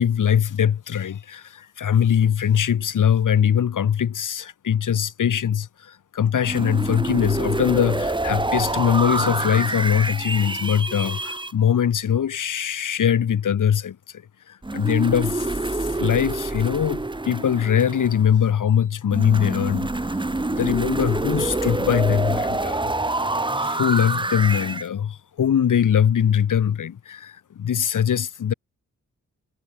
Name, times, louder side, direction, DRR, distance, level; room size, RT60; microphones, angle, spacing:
voice 1, 0.0-14.0 14.7-15.5 16.0-19.9 20.4-22.8 23.6-28.5, left 8 dB, 80° left, 4.6 m, -22 dB
sound 1, 6.4-11.5 14.6-18.4 19.1-24.9, right 2 dB, 15° right, 1.8 m, -26 dB
cardioid pair, 80°, 31 cm